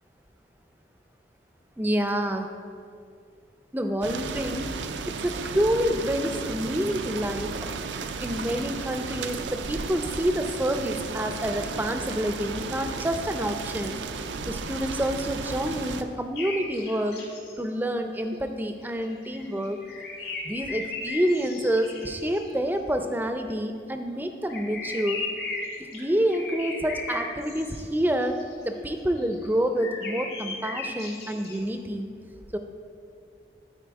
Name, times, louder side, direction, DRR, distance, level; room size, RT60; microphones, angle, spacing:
voice 1, 1.8-2.5 3.7-4.8 5.1-7.7 8.2-14.0 14.5-17.2 17.6-19.8 20.4-25.2 25.8-28.4 28.6-32.1 32.5-32.6, equal, 10° right, 6 dB, 0.4 m, -28 dB
sound 1, 4.0-16.0, right 4 dB, 90° right, 0.5 m, -34 dB
sound 2, 16.3-17.5 18.2-18.3 18.6-22.5 24.5-28.5 29.0-29.5 29.7-31.6, left 3 dB, 65° left, 2.1 m, -36 dB
12.0 x 4.6 x 4.7 m, 2.3 s
head